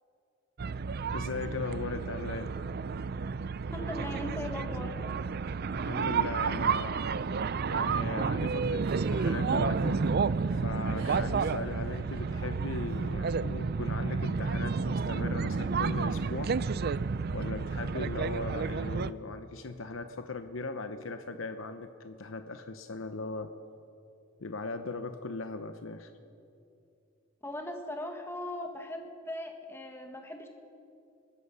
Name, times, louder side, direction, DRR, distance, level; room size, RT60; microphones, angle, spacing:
sound 1, 0.6-19.1, right 5 dB, 50° right, 0.5 m, -31 dB
voice 1, 1.1-2.5 5.7-7.0 7.7-10.0 10.5-16.6 17.3-23.5 24.4-26.1, left 3 dB, 75° left, 8 dB, 0.8 m, -38 dB
voice 2, 3.7-4.9 27.4-30.5, left 1 dB, 10° left, 3 dB, 1.6 m, -39 dB
Giggle, 8.8-10.1 11.0-11.5 11.7-12.0 12.9-13.1, right 2 dB, 70° right, 5.6 m, -47 dB
24.5 x 20.5 x 5.6 m, 2.7 s
head